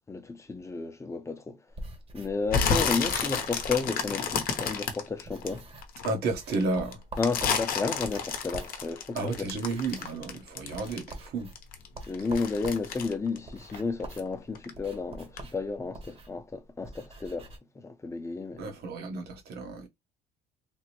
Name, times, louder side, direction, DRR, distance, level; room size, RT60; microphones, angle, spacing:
voice 1, 0.1-1.6 2.1-5.6 7.2-9.5 12.1-17.5 17.8-18.7, left 4 dB, 15° left, 0.7 m, -32 dB
sound 1, 1.7-5.0 5.2-6.0 6.3-17.6, right 1 dB, 35° right, 1.0 m, -45 dB
sound 2, 2.5-6.1 6.5-11.3 11.6-14.3 14.6-14.9 15.4-15.5, left 6 dB, 60° left, 0.7 m, -30 dB
voice 2, 6.0-7.0 9.1-11.5 18.6-19.9, right 3 dB, 70° right, 1.1 m, -32 dB
3.4 x 2.0 x 2.9 m
cardioid pair, 110°, 17 cm